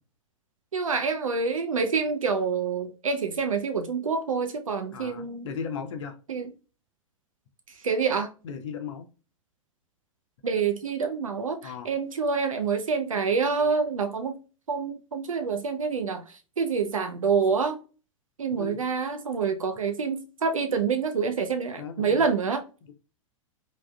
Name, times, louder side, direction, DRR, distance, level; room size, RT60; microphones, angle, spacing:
voice 1, 0.7-5.5 6.3-6.5 7.8-8.3 10.4-14.4 14.7-16.2 16.6-17.8 18.4-22.6, right 5 dB, 80° right, 0.4 m, -27 dB
voice 2, 4.9-6.1 8.4-9.1 11.6-11.9 18.5-18.8 21.8-22.2 22.8-22.9, left 6 dB, 60° left, 0.6 m, -36 dB
3.5 x 2.4 x 2.2 m
figure-of-eight pair, 95°, 17 cm